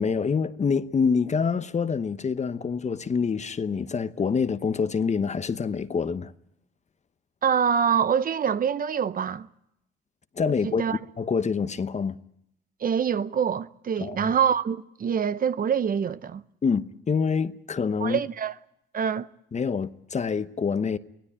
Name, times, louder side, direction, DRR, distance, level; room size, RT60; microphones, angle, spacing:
voice 1, 0.0-6.3 10.4-12.2 14.0-14.3 16.6-18.2 19.5-21.0, left 5 dB, 35° left, 0.9 m, -26 dB
voice 2, 7.4-9.5 10.6-11.0 12.8-16.4 18.0-18.6 18.9-19.3, right 7 dB, 45° right, 0.8 m, -25 dB
24.0 x 17.0 x 8.7 m
cardioid pair, 90°, 20 cm